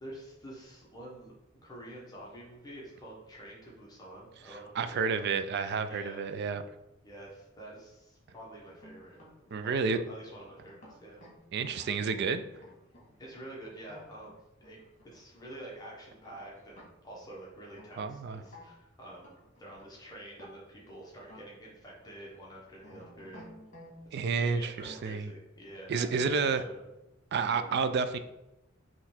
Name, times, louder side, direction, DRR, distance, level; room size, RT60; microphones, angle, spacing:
voice 1, 0.0-1.3 1.6-5.3 5.8-6.2 7.0-9.2 9.6-9.8 10.1-11.2 13.2-14.8 15.1-23.5 24.1-26.8 27.5-27.8, right 1 dB, 20° left, -4 dB, 1.0 m, -48 dB
voice 2, 4.7-6.6 9.5-10.0 11.5-12.4 18.0-18.4 24.1-25.3 25.9-26.6 27.3-28.2, right 5 dB, 55° right, 10 dB, 0.3 m, -30 dB
sound 1, 8.6-15.2 15.5-15.6 15.9-16.0 16.2-17.2 17.7-18.8 19.2-20.0 20.4-20.5 21.2-21.7 21.9-22.1 22.8-24.0 24.7-25.1, left 1 dB, 40° left, 1.6 m, -54 dB
4.0 x 3.1 x 4.3 m, 0.92 s
head